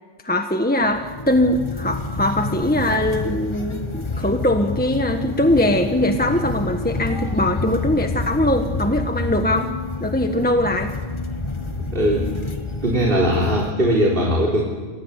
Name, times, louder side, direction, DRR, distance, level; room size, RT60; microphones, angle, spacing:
voice 1, 0.2-9.7 10.0-10.9, left 1 dB, 10° left, 5 dB, 1.3 m, -21 dB
sound 1, 0.8-13.7, left 3 dB, 25° left, 1.6 m, -28 dB
voice 2, 11.9-12.3 12.8-14.7, equal, 45° right, -2 dB, 4.1 m, -19 dB
29.5 x 24.5 x 8.2 m, 1.4 s
omnidirectional pair, 1.3 m